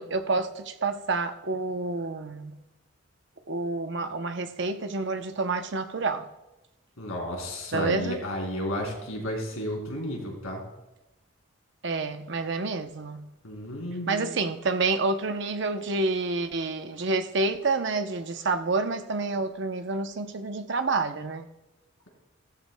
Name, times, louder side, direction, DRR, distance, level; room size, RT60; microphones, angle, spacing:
voice 1, 0.0-2.5 3.5-6.3 7.7-8.2 11.8-13.3 14.1-21.5, right 3 dB, 55° right, 0.7 m, -28 dB
voice 2, 7.0-10.6 13.4-14.3, left 1 dB, 85° left, 3.3 m, -32 dB
16.0 x 13.0 x 2.2 m
head